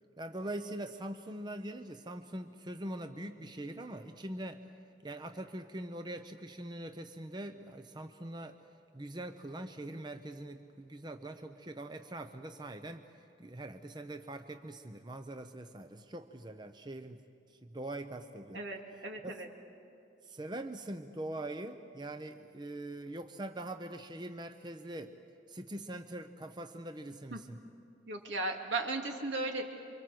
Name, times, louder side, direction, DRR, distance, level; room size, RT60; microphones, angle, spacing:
voice 1, 0.2-4.7 5.0-8.6 8.9-17.2 17.5-18.6 19.2-19.3 20.2-25.1 25.5-27.6, right 1 dB, 25° right, 7 dB, 0.8 m, -43 dB
voice 2, 18.5-19.5 27.3-27.4 28.1-29.6, right 2 dB, 75° right, 2 dB, 2.7 m, -36 dB
28.5 x 25.0 x 7.8 m, 2.6 s
head